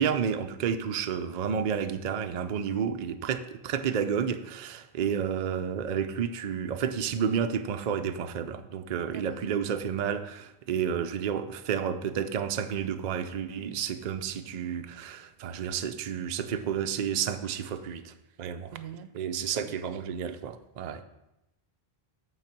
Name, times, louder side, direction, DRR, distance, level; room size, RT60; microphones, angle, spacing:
voice 1, 0.0-18.1 18.4-18.8 19.1-21.0, right 7 dB, 55° right, 8 dB, 0.5 m, -31 dB
voice 2, 9.1-9.4 18.7-19.1 19.4-19.7, right 8 dB, 80° right, 10 dB, 0.9 m, -43 dB
8.6 x 3.9 x 5.8 m, 0.91 s
omnidirectional pair, 1.1 m